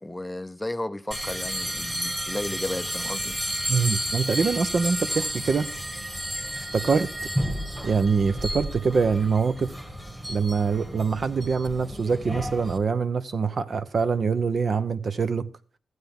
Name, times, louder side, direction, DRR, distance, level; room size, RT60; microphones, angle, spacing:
voice 1, 0.0-3.4, left 1 dB, 10° left, 0.5 m, -33 dB
sound 1, 1.1-12.8, equal, 10° right, 1.8 m, -32 dB
voice 2, 3.7-5.7 6.7-7.1 7.8-9.7 10.3-15.5, right 5 dB, 50° right, 0.7 m, -24 dB
15.0 x 8.0 x 3.5 m
cardioid pair, 80°, 0 cm